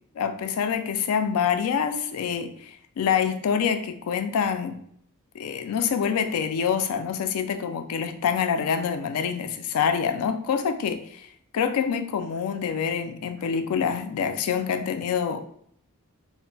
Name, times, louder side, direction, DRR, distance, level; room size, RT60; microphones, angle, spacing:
voice 1, 0.2-4.8 5.3-11.3 11.5-15.5, left 7 dB, 70° left, 8 dB, 0.3 m, -26 dB
2.2 x 2.1 x 3.8 m, 0.67 s
head